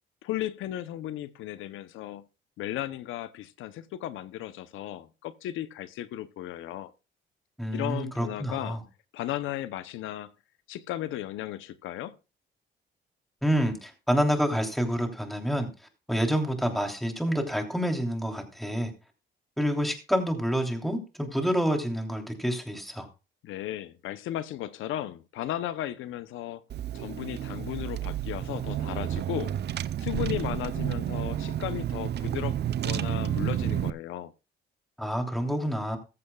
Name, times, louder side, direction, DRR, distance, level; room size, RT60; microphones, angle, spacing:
voice 1, 0.2-2.2 2.6-6.9 7.7-8.8 9.1-10.3 10.7-12.2 23.4-26.6 26.9-29.5 30.0-34.3, left 13 dB, 85° left, 0.7 m, -35 dB
voice 2, 7.6-8.8 13.4-15.7 16.1-18.9 19.6-23.1 35.0-36.0, equal, ahead, 3.1 m, -28 dB
Car / Engine, 26.7-33.9, right 11 dB, 55° right, 0.6 m, -31 dB
14.5 x 14.0 x 2.3 m
cardioid pair, 90°, 20 cm